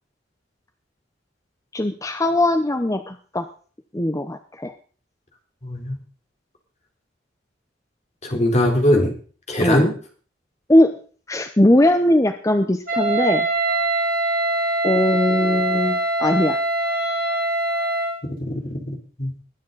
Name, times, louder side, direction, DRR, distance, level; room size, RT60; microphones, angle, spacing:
voice 1, 1.7-3.5 3.9-4.7 9.6-9.9 10.7-11.0 11.3-13.5 14.8-16.6, left 1 dB, 15° left, 8 dB, 0.7 m, -19 dB
voice 2, 5.6-6.0 8.2-9.1 9.5-9.9 18.4-19.3, left 1 dB, 35° left, 2 dB, 3.7 m, -21 dB
Wind instrument woodwind instrument, 12.9-18.2, right 2 dB, 50° right, 4.2 m, -23 dB
21.0 x 9.4 x 4.0 m, 0.41 s
head